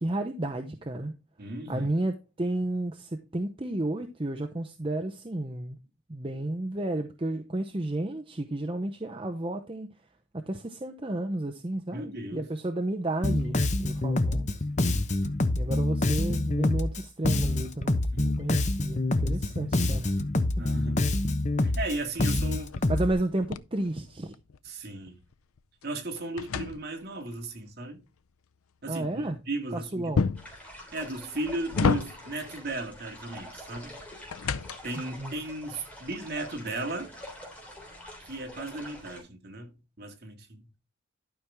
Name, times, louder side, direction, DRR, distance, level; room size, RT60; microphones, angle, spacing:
voice 1, 0.0-1.1 1.7-5.8 6.1-9.9 10.3-14.5 15.5-20.2 22.9-24.3 28.9-29.4 29.7-30.3 34.9-35.3, right 1 dB, 25° right, 0.7 m, -32 dB
voice 2, 1.4-1.9 11.9-12.5 14.6-14.8 18.1-18.3 19.5-19.7 20.6-21.2 21.6-22.7 24.6-25.2 25.8-28.0 28.8-30.2 30.9-34.0 34.8-37.1 38.3-40.7, right 2 dB, 50° right, 2.4 m, -36 dB
Bass guitar, 13.2-23.1, left 2 dB, 35° left, 0.9 m, -26 dB
different door closing, 21.8-24.7 25.1-27.3 30.1-30.6 31.3-32.5 33.8-35.1, left 5 dB, 85° left, 0.6 m, -32 dB
sound 1, 30.4-39.2, left 1 dB, 5° left, 3.4 m, -46 dB
12.0 x 6.0 x 3.5 m
head